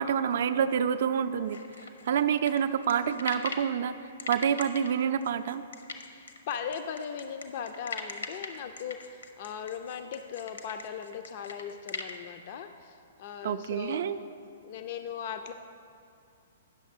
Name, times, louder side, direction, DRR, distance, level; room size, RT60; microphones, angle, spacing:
voice 1, 0.0-1.6 2.1-3.9 4.3-5.6 13.4-14.2, right 8 dB, 55° right, 11 dB, 0.4 m, -27 dB
sound 1, 1.5-3.7 4.2-12.1, left 4 dB, 70° left, 0.7 m, -40 dB
voice 2, 6.0-14.0 14.6-15.5, left 7 dB, 45° left, 8 dB, 0.4 m, -38 dB
9.1 x 6.4 x 5.0 m, 2.4 s
figure-of-eight pair, 115°, 0 cm